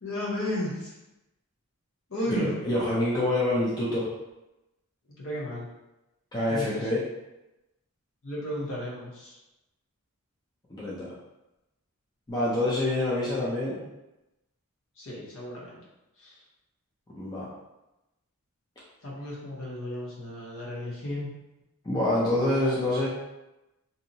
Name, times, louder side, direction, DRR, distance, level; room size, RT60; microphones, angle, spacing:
voice 1, 0.0-0.9 2.1-2.5 5.2-5.7 6.5-6.9 8.2-9.4 15.0-15.8 16.2-16.4 19.0-21.3, left 1 dB, 60° left, -5 dB, 0.8 m, -34 dB
voice 2, 2.3-4.1 6.3-7.0 10.7-11.1 12.3-13.8 17.1-17.5 21.8-23.1, left 1 dB, 20° left, -7 dB, 0.4 m, -26 dB
2.6 x 2.0 x 2.6 m, 0.97 s
head